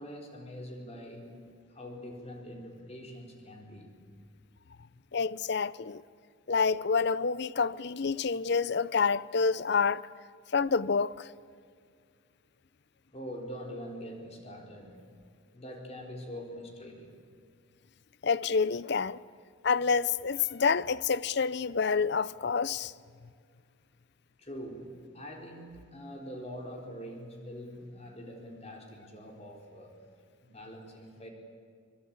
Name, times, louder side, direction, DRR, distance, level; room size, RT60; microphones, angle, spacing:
voice 1, 0.0-4.0 13.1-15.0 15.5-17.1 24.4-29.9 30.4-31.3, equal, 30° left, 4.0 m, -44 dB
voice 2, 5.1-6.0 6.5-10.0 10.5-11.3 18.2-19.2 19.6-22.9, left 5 dB, 55° left, 0.6 m, -28 dB
24.5 x 23.0 x 8.6 m
head